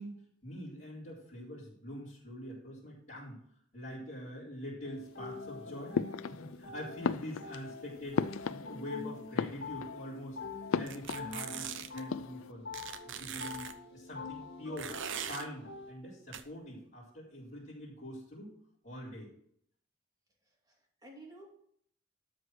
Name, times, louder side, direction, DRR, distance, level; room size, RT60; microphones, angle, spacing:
voice 1, 0.0-3.4 3.7-6.0 6.3-8.2 8.5-12.6 13.0-14.9 15.3-18.5 18.8-19.3, equal, 40° left, -12 dB, 4.3 m, -44 dB
sound 1, 4.8-15.9, left 4 dB, 60° left, 2.0 m, -45 dB
sound 2, 5.9-6.7 7.0-9.0 9.3-10.1 10.7-11.7 11.9-12.5, left 6 dB, 90° left, 0.4 m, -36 dB
sound 3, 10.9-12.0 12.7-13.7 14.8-15.4 16.3-16.4, right 9 dB, 65° right, 0.7 m, -41 dB
voice 2, 20.4-21.5, right 1 dB, 20° right, -1 dB, 2.7 m, -53 dB
12.5 x 4.8 x 6.2 m, 0.66 s
head